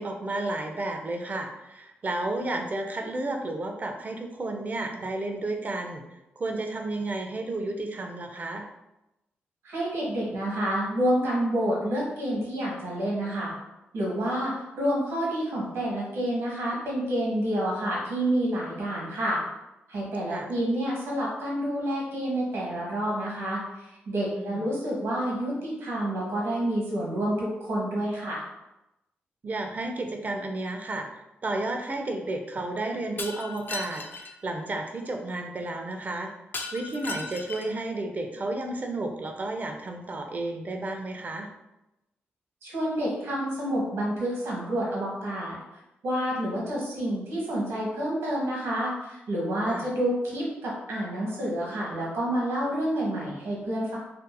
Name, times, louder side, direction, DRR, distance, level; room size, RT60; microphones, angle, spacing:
voice 1, 0.0-6.0 6.4-8.7 20.3-20.5 24.3-24.6 29.4-31.1 31.4-36.3 36.7-41.5 49.7-49.9, right 2 dB, 40° right, 4 dB, 0.4 m, -32 dB
voice 2, 9.6-13.5 13.9-19.4 19.9-23.6 24.1-28.4 42.6-45.5 46.0-54.0, right 1 dB, 80° right, -4 dB, 1.0 m, -28 dB
Shatter, 33.2-34.3 36.5-37.8, left 3 dB, 50° left, 0.3 m, -36 dB
2.6 x 2.5 x 2.2 m, 0.93 s
cardioid pair, 65°, 4 cm